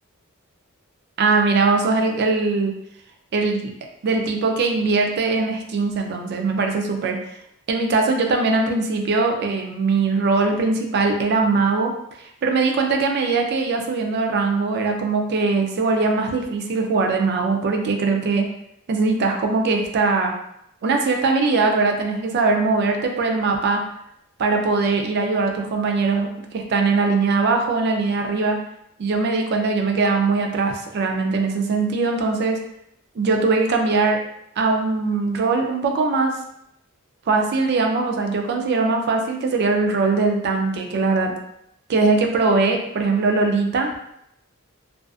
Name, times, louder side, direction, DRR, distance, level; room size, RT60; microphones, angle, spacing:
voice 1, 1.2-2.7 3.3-3.7 4.0-7.2 7.7-11.9 12.4-18.5 18.9-20.3 20.8-23.8 24.4-28.6 29.0-32.6 33.2-34.2 34.6-36.4 37.3-41.3 41.9-43.9, right 3 dB, 50° right, 3 dB, 0.4 m, -21 dB
2.5 x 2.3 x 2.3 m, 0.78 s
head